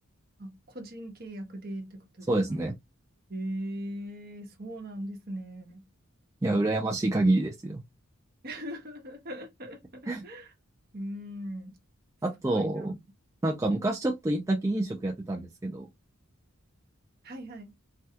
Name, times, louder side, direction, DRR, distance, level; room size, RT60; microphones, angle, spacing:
voice 1, 0.4-2.6 3.3-5.9 8.4-10.5 10.9-11.8 12.5-12.9 17.2-17.7, right 1 dB, 45° right, 1.0 m, -39 dB
voice 2, 2.3-2.7 6.4-7.8 10.1-10.2 12.2-12.9 13.4-15.9, right 2 dB, 15° right, 0.3 m, -27 dB
3.3 x 2.3 x 2.8 m
head